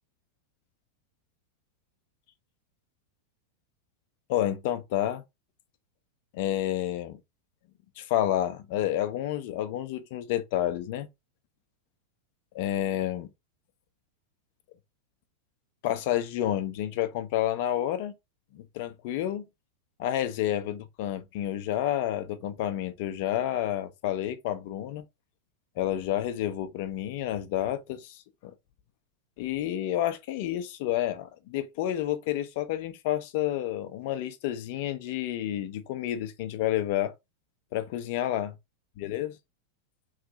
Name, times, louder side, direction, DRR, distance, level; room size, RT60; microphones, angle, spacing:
voice 1, 4.3-5.2 6.3-7.2 8.0-11.1 12.5-13.3 15.8-18.1 18.5-19.5 20.0-25.0 25.8-28.5 29.4-37.1 37.7-38.5 39.0-39.3, left 12 dB, 50° left, 0.6 m, -30 dB
3.2 x 2.6 x 3.8 m
figure-of-eight pair, 90°, 0 cm